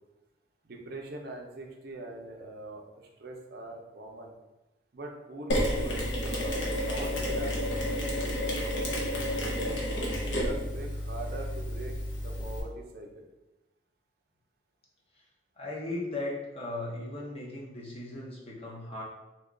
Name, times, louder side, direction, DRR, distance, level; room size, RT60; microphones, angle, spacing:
voice 1, 0.6-4.3 4.9-7.6 7.9-8.3 8.6-9.8 10.4-13.3, right 2 dB, 55° right, 1 dB, 0.5 m, -43 dB
Mechanisms, 5.5-12.6, equal, 80° left, 0.8 m, -31 dB
voice 2, 15.6-19.0, left 2 dB, 35° left, -4 dB, 0.8 m, -37 dB
2.8 x 2.3 x 3.7 m, 1.0 s
head